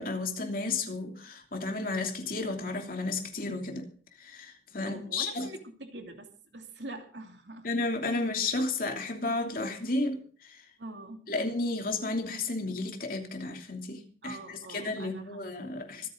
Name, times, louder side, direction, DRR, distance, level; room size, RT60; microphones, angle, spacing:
voice 1, 0.0-3.9 4.2-5.5 7.6-10.6 11.3-16.1, left 3 dB, 50° left, 3 dB, 3.0 m, -32 dB
voice 2, 4.7-7.7 10.8-11.2 14.2-16.1, right 2 dB, 70° right, 4 dB, 2.7 m, -45 dB
25.5 x 9.2 x 3.9 m, 0.41 s
head